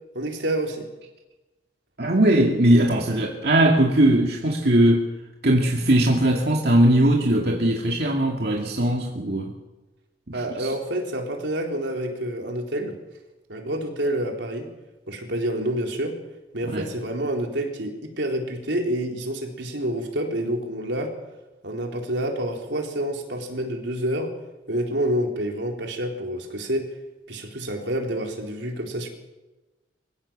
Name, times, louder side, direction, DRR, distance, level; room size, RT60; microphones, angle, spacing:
voice 1, 0.1-0.9 10.3-13.0 13.5-14.7 15.1-16.2 16.5-21.1 21.6-24.3 24.7-26.9 27.3-29.1, right 1 dB, 80° right, 2 dB, 4.0 m, -28 dB
voice 2, 2.0-5.1 5.4-9.5 10.3-10.7 16.7-16.9, right 1 dB, 60° right, 0 dB, 2.3 m, -20 dB
24.5 x 16.5 x 7.5 m, 1.1 s
head